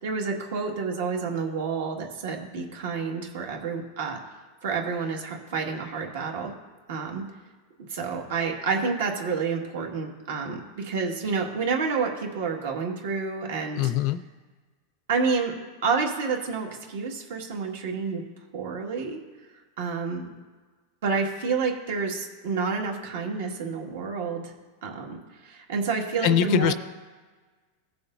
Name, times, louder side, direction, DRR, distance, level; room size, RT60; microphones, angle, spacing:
voice 1, 0.0-4.2 4.6-6.5 6.9-7.2 7.9-13.9 15.1-15.5 15.8-18.2 18.5-19.2 19.8-20.3 21.0-24.5 24.8-25.2 25.4-26.7, right 5 dB, 70° right, 1 dB, 1.8 m, -29 dB
voice 2, 13.8-14.2 26.2-26.7, left 10 dB, 40° left, 13 dB, 0.4 m, -22 dB
17.0 x 6.9 x 2.6 m, 1.4 s
supercardioid pair, 170°, 0 cm